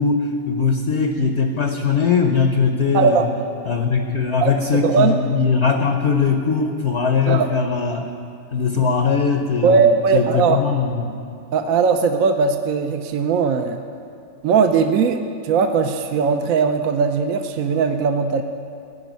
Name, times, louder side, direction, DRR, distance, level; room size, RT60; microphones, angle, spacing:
voice 1, 0.0-3.3 3.7-8.1 8.5-11.1, left 5 dB, 55° left, 5 dB, 0.8 m, -20 dB
voice 2, 2.9-3.3 4.4-4.5 4.8-5.2 7.3-7.5 9.6-10.6 11.5-13.8 14.4-18.4, right 5 dB, 65° right, 6 dB, 0.9 m, -19 dB
16.0 x 5.4 x 9.3 m, 2.4 s
omnidirectional pair, 1.9 m